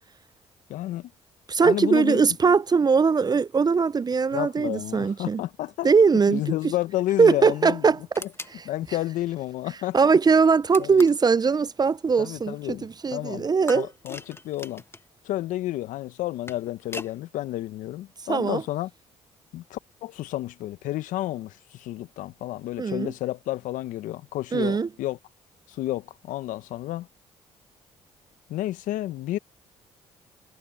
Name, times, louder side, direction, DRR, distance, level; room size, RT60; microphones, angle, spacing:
voice 1, 0.7-1.1 1.6-2.3 4.3-5.9 6.3-7.9 8.2-8.3 8.6-10.2 10.8-11.0 12.2-13.5 13.7-14.8 15.2-18.9 19.5-25.2 25.7-27.1 28.5-29.4, left 15 dB, 70° left, 1.3 m, -31 dB
voice 2, 1.5-5.4 5.8-6.4 7.2-8.0 9.9-13.9 18.3-18.6 22.8-23.1 24.5-24.9, right 5 dB, 30° right, 0.5 m, -20 dB
sound 1, 8.1-8.6 10.7-11.3 13.7-15.1 16.2-17.2, left 2 dB, 20° left, 1.7 m, -40 dB
hypercardioid pair, 55°, 14 cm